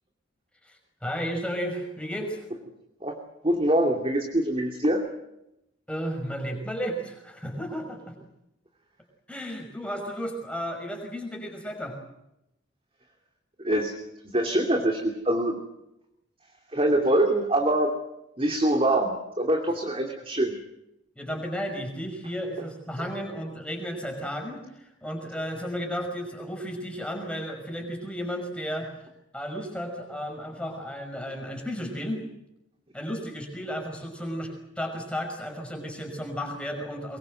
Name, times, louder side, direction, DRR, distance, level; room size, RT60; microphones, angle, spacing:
voice 1, 1.0-2.4 5.9-8.1 9.3-12.0 21.2-28.9 29.3-32.2 32.9-37.2, equal, 5° left, 3 dB, 5.7 m, -33 dB
voice 2, 3.4-5.0 13.6-13.9 14.3-15.6 16.7-17.9 18.4-20.5, right 1 dB, 30° right, 2 dB, 2.7 m, -24 dB
23.5 x 22.5 x 7.8 m, 0.87 s
head